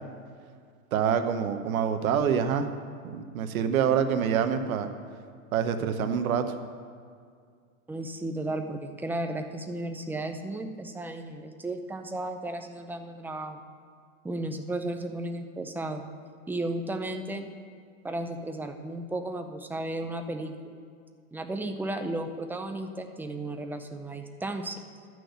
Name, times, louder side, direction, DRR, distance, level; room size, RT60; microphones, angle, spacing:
voice 1, 0.9-2.7 3.0-4.9 5.5-6.5, right 7 dB, 85° right, 8 dB, 1.0 m, -26 dB
voice 2, 7.9-13.6 14.2-16.1 16.5-17.5 18.0-20.5 21.3-24.8, right 2 dB, 5° right, 5 dB, 0.6 m, -34 dB
11.5 x 6.2 x 8.1 m, 2.2 s
supercardioid pair, 130°, 41 cm